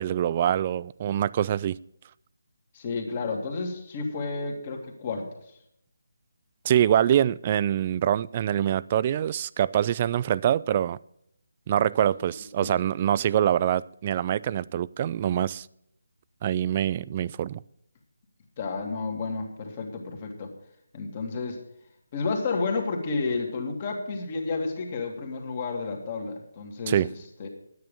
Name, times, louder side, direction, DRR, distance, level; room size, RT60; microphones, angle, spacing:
voice 1, 0.0-1.8 6.6-11.0 11.7-15.7 16.4-17.6 26.9-27.1, right 10 dB, 30° right, 20 dB, 0.3 m, -24 dB
voice 2, 2.7-5.3 12.2-12.3 12.6-12.7 18.6-20.5 20.9-21.6 22.1-27.1 27.4-27.5, left 4 dB, 30° left, 2 dB, 2.3 m, -31 dB
10.5 x 9.5 x 5.3 m, 0.75 s
figure-of-eight pair, 160°, 0 cm